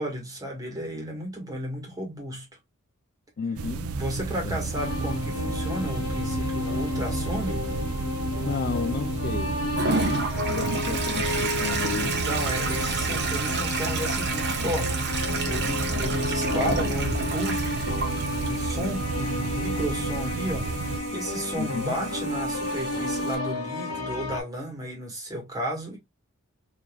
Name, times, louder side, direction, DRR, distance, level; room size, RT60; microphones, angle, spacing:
voice 1, 0.0-2.5 4.0-7.7 12.0-17.9 18.4-26.0, equal, 15° right, 1.8 m, -33 dB
voice 2, 3.4-3.9 4.4-4.7 8.4-9.5 9.9-12.1 14.6-14.7 21.6-21.9, left 5 dB, 45° left, 0.4 m, -33 dB
sound 1, 3.6-21.0, right 4 dB, 70° right, 0.5 m, -32 dB
sound 2, 4.7-24.4, left 2 dB, 70° left, 1.2 m, -32 dB
Toilet flush, 9.8-23.4, right 3 dB, 50° right, 1.0 m, -31 dB
4.0 x 3.0 x 2.3 m
head